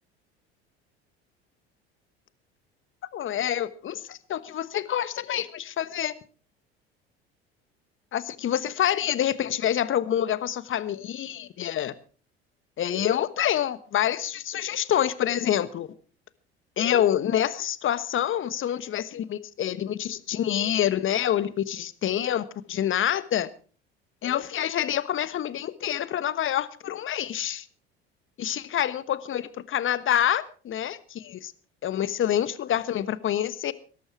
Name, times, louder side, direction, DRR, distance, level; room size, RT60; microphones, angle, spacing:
voice 1, 3.1-6.1 8.1-11.9 12.8-15.9 16.8-23.5 24.2-27.7 28.4-31.5 31.8-33.7, left 10 dB, 40° left, 16 dB, 1.2 m, -27 dB
18.0 x 13.5 x 4.6 m, 0.39 s
hypercardioid pair, 65°, 32 cm